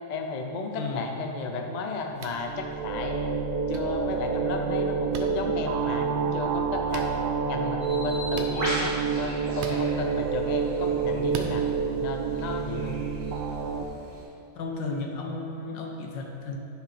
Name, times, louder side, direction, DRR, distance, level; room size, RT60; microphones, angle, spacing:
voice 1, 0.1-3.3 3.7-7.2 7.4-11.7 12.0-13.0, left 3 dB, 70° left, 3 dB, 0.4 m, -34 dB
voice 2, 0.8-1.1 14.6-16.6, left 3 dB, 85° left, 1 dB, 1.7 m, -34 dB
sound 1, 2.2-2.4 3.7-3.8 5.1-5.3 6.9-7.1 8.3-8.5 9.6-9.8 11.3-11.5, right 5 dB, 65° right, 0.7 m, -37 dB
sound 2, 2.3-13.8, right 5 dB, 90° right, 1.4 m, -28 dB
Bird, 7.8-14.2, equal, 40° right, 2.8 m, -39 dB
10.5 x 5.7 x 5.0 m, 2.7 s
omnidirectional pair, 2.0 m